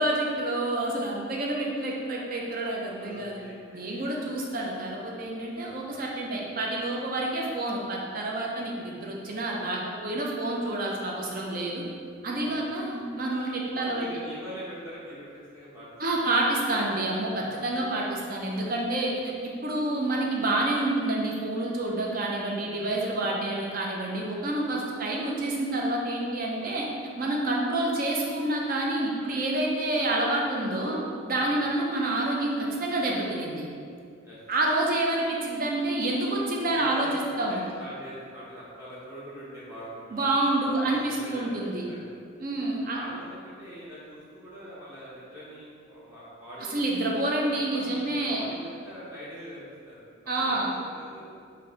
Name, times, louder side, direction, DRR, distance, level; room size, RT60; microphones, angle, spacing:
voice 1, 0.0-3.4 3.7-11.8 12.2-14.1 16.0-26.9 27.2-31.0 31.2-33.6 34.5-37.6 40.1-41.9 42.4-43.0 46.7-48.4 50.3-50.7, right 1 dB, 45° right, -2 dB, 0.5 m, -28 dB
voice 2, 2.9-4.1 5.9-6.1 8.5-8.9 12.3-12.7 13.7-16.3 17.5-17.7 20.0-20.5 22.8-23.0 26.6-26.8 31.5-31.7 34.2-34.4 36.6-37.1 37.5-42.2 42.9-47.1 47.7-50.0 50.4-51.2, equal, 15° right, -9 dB, 0.9 m, -44 dB
3.8 x 2.6 x 3.9 m, 2.3 s
head